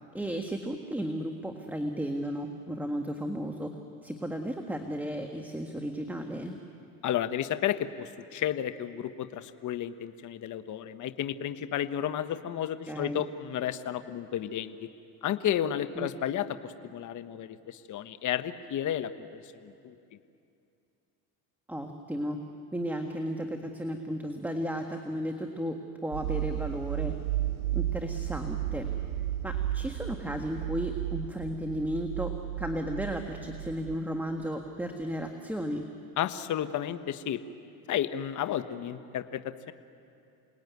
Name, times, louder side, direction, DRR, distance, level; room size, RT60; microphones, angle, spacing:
voice 1, 0.1-3.7 4.0-6.6 12.9-13.2 15.9-16.1 21.7-22.4 22.7-25.8 26.0-27.1 27.7-28.9 29.4-35.9, equal, 5° right, 3 dB, 1.6 m, -34 dB
voice 2, 7.0-14.9 15.2-19.9 36.2-37.4 37.9-39.7, left 10 dB, 45° left, 10 dB, 1.2 m, -32 dB
sound 1, 26.1-34.0, right 13 dB, 85° right, 2.4 m, -33 dB
28.5 x 19.5 x 9.5 m, 2.6 s
supercardioid pair, 105°, 41 cm